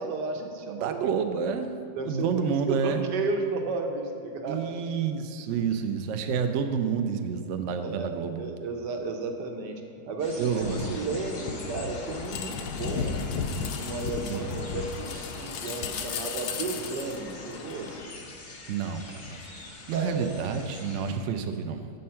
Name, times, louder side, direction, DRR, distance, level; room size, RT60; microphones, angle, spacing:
voice 1, 0.0-0.9 1.6-1.7 2.0-4.6 7.8-9.8 10.1-13.3 13.5-18.1 19.9-20.3, right 3 dB, 85° right, 3 dB, 1.4 m, -33 dB
voice 2, 0.8-1.7 2.0-3.0 4.5-8.4 10.4-11.0 14.3-14.5 18.7-21.9, right 6 dB, 70° right, 7 dB, 0.7 m, -29 dB
sound 1, 10.2-21.2, left 2 dB, 40° left, 0.7 m, -45 dB
sound 2, 10.6-18.0, left 6 dB, 75° left, 1.1 m, -34 dB
7.6 x 5.4 x 5.6 m, 2.5 s
omnidirectional pair, 1.8 m